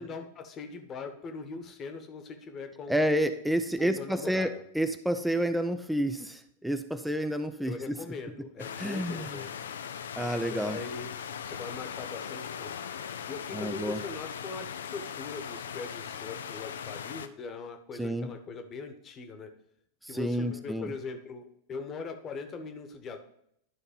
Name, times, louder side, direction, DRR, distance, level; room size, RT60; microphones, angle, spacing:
voice 1, 0.0-3.0 3.8-4.5 7.6-9.5 10.5-11.1 11.4-12.7 13.3-19.5 20.1-23.2, left 4 dB, 30° left, 6 dB, 1.3 m, -41 dB
voice 2, 2.9-8.1 8.8-9.4 10.2-10.8 13.5-14.0 18.0-18.3 20.0-20.9, equal, 5° right, 8 dB, 0.6 m, -30 dB
sound 1, 8.6-17.3, left 8 dB, 65° left, 0.5 m, -39 dB
12.0 x 4.0 x 5.3 m, 0.72 s
figure-of-eight pair, 90°, 0 cm